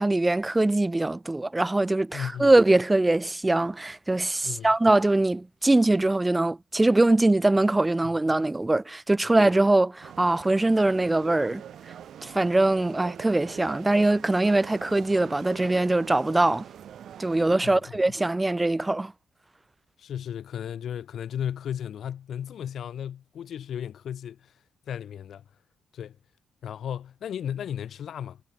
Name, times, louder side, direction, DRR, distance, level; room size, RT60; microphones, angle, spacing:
voice 1, 0.0-11.6 12.2-16.6 17.2-19.1, right 2 dB, 20° right, 0.8 m, -22 dB
voice 2, 2.1-2.5 4.4-4.7 17.6-17.8 20.0-24.4 24.9-25.4 25.9-26.2 26.6-28.4, left 9 dB, 65° left, 2.5 m, -34 dB
sound 1, 10.0-17.5, right 9 dB, 65° right, 1.3 m, -43 dB
hypercardioid pair, 45°, 0 cm